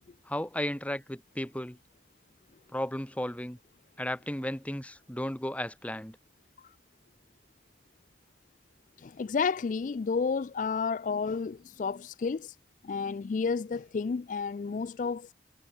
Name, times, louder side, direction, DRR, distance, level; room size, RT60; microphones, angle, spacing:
voice 1, 0.2-1.8 2.7-3.6 4.0-6.2, left 1 dB, 10° left, 1.5 m, -34 dB
voice 2, 9.0-12.6 12.8-15.3, left 5 dB, 45° left, 0.3 m, -31 dB
head